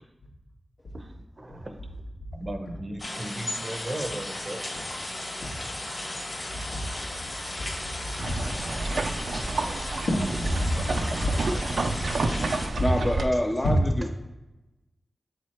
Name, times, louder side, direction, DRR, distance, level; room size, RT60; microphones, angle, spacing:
voice 1, 0.9-1.8 2.3-4.9, right 1 dB, 30° right, 6 dB, 0.8 m, -37 dB
sound 1, 3.0-12.7, left 1 dB, 40° left, 1.9 m, -35 dB
voice 2, 7.6-8.4 8.7-8.8 10.1-11.4 11.7-11.8 12.2-12.4 12.7-12.8, left 1 dB, 65° left, -3 dB, 2.0 m, -30 dB
sound 2, 8.2-13.3, right 3 dB, 60° right, 0.5 m, -30 dB
voice 3, 12.8-14.1, left 1 dB, 15° left, 2 dB, 0.6 m, -26 dB
7.9 x 4.6 x 4.4 m, 1.0 s
wide cardioid pair, 115°, 0 cm